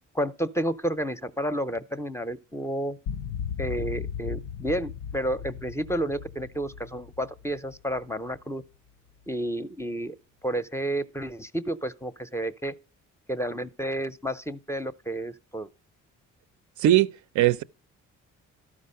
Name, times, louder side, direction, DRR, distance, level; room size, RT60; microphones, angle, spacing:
voice 1, 0.1-3.0 3.6-8.6 9.3-10.2 10.4-12.7 13.3-15.7, right 1 dB, 10° left, 0.5 m, -31 dB
sound 1, 3.1-8.4, left 8 dB, 90° left, 0.5 m, -36 dB
voice 2, 16.8-17.6, right 13 dB, 75° right, 0.5 m, -21 dB
12.5 x 4.9 x 5.4 m
cardioid pair, 90°, 30 cm